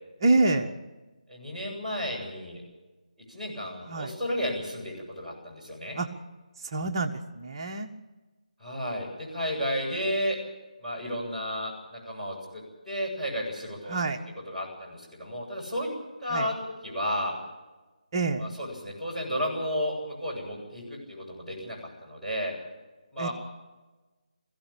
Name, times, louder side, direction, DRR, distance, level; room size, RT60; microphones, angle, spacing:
voice 1, 0.2-0.7 3.9-4.1 5.9-6.1 6.6-7.9 13.9-14.2 16.3-16.5 18.1-18.4 23.2-23.3, right 3 dB, 35° right, 4 dB, 1.6 m, -26 dB
voice 2, 1.3-2.6 3.3-6.0 8.6-10.4 10.8-14.0 14.5-15.9 16.2-16.5 16.8-17.4 18.4-22.5 23.1-23.3, equal, ahead, -11 dB, 7.8 m, -32 dB
22.0 x 16.0 x 8.7 m, 1.2 s
figure-of-eight pair, 155°, 4 cm